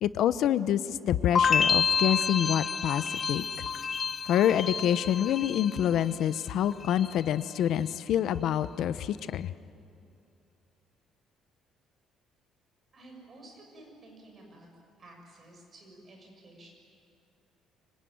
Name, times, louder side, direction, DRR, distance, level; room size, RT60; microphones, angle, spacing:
voice 1, 0.0-3.7 4.3-9.5, left 10 dB, 60° left, 14 dB, 0.9 m, -27 dB
sound 1, 1.4-6.4 6.7-7.3, left 6 dB, 30° left, 0.5 m, -29 dB
voice 2, 12.9-14.7 15.0-16.7, right 2 dB, 30° right, 1 dB, 7.0 m, -52 dB
25.0 x 24.5 x 9.6 m, 2.5 s
cardioid pair, 160°, 0 cm